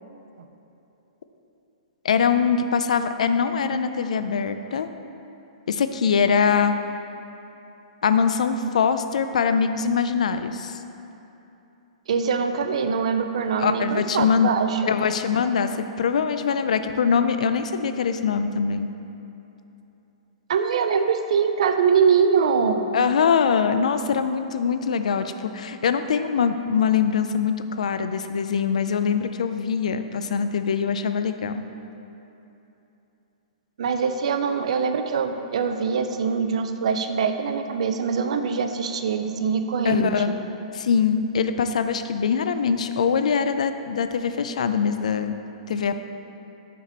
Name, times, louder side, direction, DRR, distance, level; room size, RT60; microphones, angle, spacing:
voice 1, 2.0-4.9 5.7-6.8 8.0-10.8 13.6-14.5 14.8-18.9 22.9-31.6 39.8-40.4 40.7-45.3 45.7-45.9, left 6 dB, 85° left, 10 dB, 0.4 m, -23 dB
voice 2, 12.1-15.0 20.5-22.8 33.8-40.1, right 6 dB, 65° right, 7 dB, 0.5 m, -23 dB
7.0 x 4.2 x 4.3 m, 3.0 s
hypercardioid pair, 165°, 4 cm